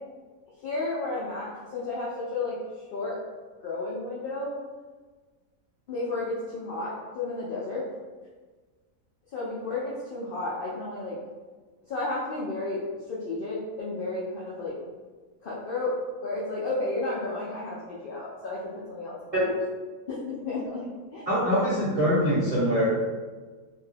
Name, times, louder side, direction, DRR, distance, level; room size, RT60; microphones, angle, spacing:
voice 1, 0.6-3.2 3.6-4.5 5.9-7.8 9.3-11.2 11.9-14.7 15.4-19.3 20.1-21.3, left 2 dB, 80° left, -7 dB, 0.4 m, -32 dB
voice 2, 21.3-22.9, equal, 30° right, -10 dB, 0.8 m, -23 dB
2.6 x 2.2 x 3.2 m, 1.4 s
omnidirectional pair, 1.5 m